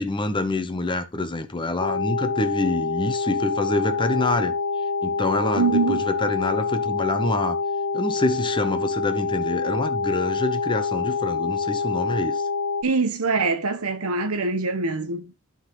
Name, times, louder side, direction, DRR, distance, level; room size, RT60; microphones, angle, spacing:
voice 1, 0.0-4.5 5.0-7.6 7.9-12.4, left 2 dB, 20° left, 0.9 m, -26 dB
sound 1, 1.8-12.8, left 4 dB, 65° left, 0.5 m, -26 dB
voice 2, 5.5-6.1 12.8-15.3, right 4 dB, 90° right, 1.0 m, -24 dB
12.0 x 4.0 x 3.8 m
head